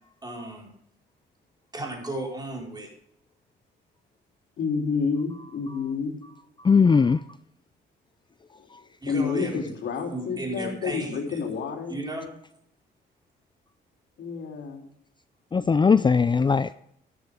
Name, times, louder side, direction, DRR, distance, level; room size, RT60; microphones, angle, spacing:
voice 1, 0.2-0.7 1.7-2.9 9.0-9.6 10.1-11.4 11.9-12.3, right 1 dB, 20° right, 5.0 m, -34 dB
voice 2, 4.6-6.1 8.6-8.7 9.1-12.0 14.2-14.8, left 5 dB, 70° left, 3.7 m, -29 dB
voice 3, 6.6-7.2 15.5-16.7, left 5 dB, 25° left, 0.5 m, -19 dB
13.0 x 12.0 x 3.7 m
cardioid pair, 90°, 20 cm